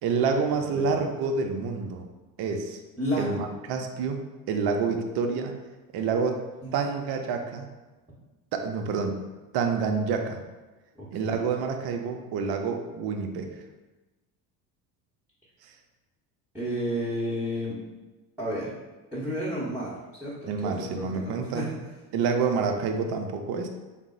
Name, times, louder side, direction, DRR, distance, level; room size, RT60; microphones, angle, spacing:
voice 1, 0.0-2.1 2.4-2.8 3.2-5.5 5.9-6.4 6.7-7.7 8.5-9.2 9.5-10.4 11.1-13.5 15.6-15.7 20.5-21.7 22.1-23.7, right 5 dB, 50° right, 4 dB, 0.6 m, -28 dB
voice 2, 0.6-1.1 3.0-3.5 6.6-6.7 10.9-11.4 16.5-17.8 18.4-18.7 19.1-21.8, equal, 5° right, -7 dB, 0.9 m, -32 dB
3.7 x 2.0 x 3.8 m, 1.2 s
hypercardioid pair, 70°, 48 cm